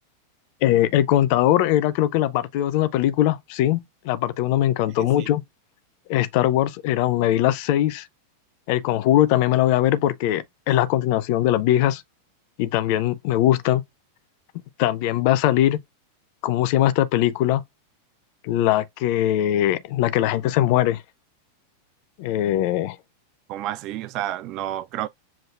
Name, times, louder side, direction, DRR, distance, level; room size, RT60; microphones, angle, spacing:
voice 1, 0.6-5.4 6.1-8.1 8.7-12.0 12.6-13.8 14.8-15.8 16.4-17.6 18.4-21.0 22.2-23.0, left 13 dB, 45° left, 0.5 m, -21 dB
voice 2, 5.0-5.3 23.5-25.1, right 13 dB, 40° right, 0.3 m, -30 dB
7.2 x 2.5 x 2.4 m
figure-of-eight pair, 90°, 0 cm